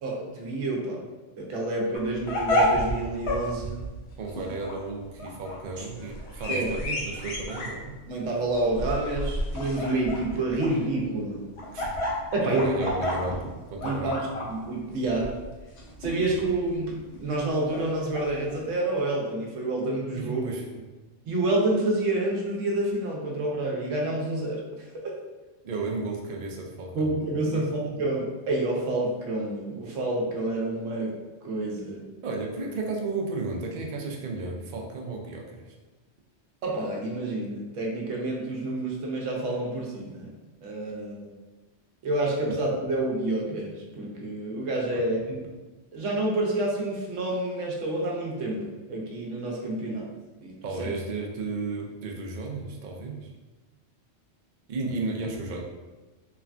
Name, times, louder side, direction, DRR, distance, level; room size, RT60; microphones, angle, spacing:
voice 1, 0.0-1.0 1.4-3.8 5.8-5.9 6.5-6.7 8.1-11.4 12.3-12.7 13.8-15.3 16.0-20.4 21.2-25.1 26.9-31.1 31.4-32.0 36.6-41.3 42.0-45.4 45.9-50.1 50.4-50.9, right 2 dB, 90° right, -2 dB, 1.0 m, -28 dB
sound 1, 1.9-18.6, equal, 70° left, 0.9 m, -31 dB
voice 2, 4.2-8.0 11.7-11.8 12.4-14.2 20.2-20.9 25.6-27.1 27.5-27.7 32.2-35.8 42.5-42.6 44.9-45.0 50.6-53.3 54.7-55.6, right 3 dB, 65° right, 0 dB, 0.5 m, -33 dB
3.2 x 2.1 x 2.4 m, 1.2 s
omnidirectional pair, 1.3 m